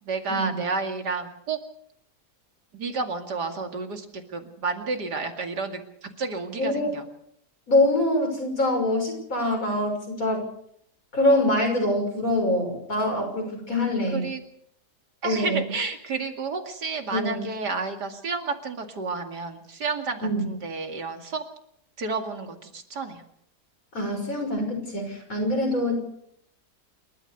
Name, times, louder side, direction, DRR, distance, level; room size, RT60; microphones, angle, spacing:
voice 1, 0.0-1.6 2.7-7.0 13.9-14.4 15.2-21.4 22.0-23.2, right 4 dB, 80° right, 5 dB, 2.9 m, -31 dB
voice 2, 6.6-6.9 7.7-10.5 11.1-14.2 15.2-15.7 17.1-17.5 20.2-20.5 23.9-26.0, left 1 dB, 55° left, 3 dB, 6.6 m, -24 dB
28.5 x 13.5 x 6.8 m, 0.71 s
omnidirectional pair, 1.7 m